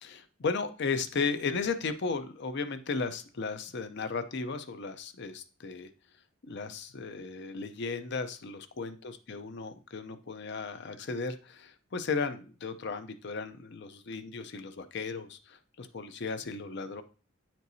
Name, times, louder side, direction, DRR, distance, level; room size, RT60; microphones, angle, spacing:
voice 1, 0.0-5.9 6.4-17.0, left 4 dB, 55° left, 10 dB, 0.6 m, -35 dB
9.3 x 4.5 x 2.7 m, 0.36 s
head